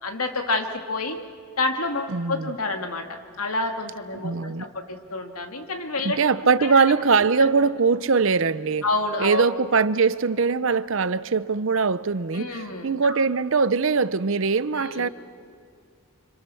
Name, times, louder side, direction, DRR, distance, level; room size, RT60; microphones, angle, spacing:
voice 1, 0.0-1.2 1.6-6.2 6.6-6.8 8.8-9.5 12.3-13.2 14.8-15.1, left 3 dB, 80° left, 2.3 m, -28 dB
voice 2, 2.1-2.5 4.2-4.7 6.0-8.9 9.2-15.1, right 5 dB, 60° right, 0.7 m, -22 dB
30.0 x 26.0 x 7.1 m
head